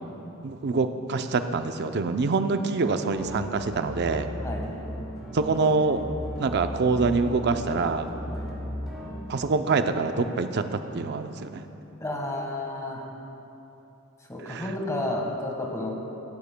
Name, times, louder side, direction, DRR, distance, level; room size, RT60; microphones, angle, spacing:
voice 1, 0.4-4.3 5.3-6.0 6.4-8.1 9.3-11.6 14.5-14.6, right 4 dB, 55° right, 8 dB, 0.5 m, -25 dB
sound 1, 3.1-9.1, equal, ahead, 2.5 m, -36 dB
voice 2, 12.0-13.0 14.3-15.9, left 1 dB, 15° left, 0 dB, 1.4 m, -31 dB
15.5 x 13.5 x 2.2 m, 2.9 s
head